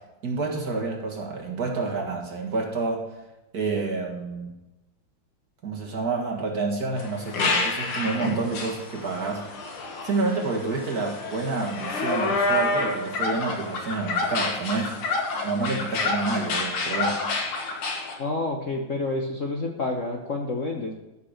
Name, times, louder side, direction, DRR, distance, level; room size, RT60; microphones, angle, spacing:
voice 1, 0.2-3.0 3.5-4.5 5.6-9.5 10.0-14.9 15.4-17.2, right 3 dB, 45° right, 0 dB, 2.3 m, -28 dB
sound 1, 7.0-18.1, left 3 dB, 85° left, 2.4 m, -29 dB
voice 2, 18.2-20.9, left 2 dB, 45° left, 1 dB, 1.1 m, -29 dB
13.0 x 6.0 x 6.5 m, 0.98 s
omnidirectional pair, 2.3 m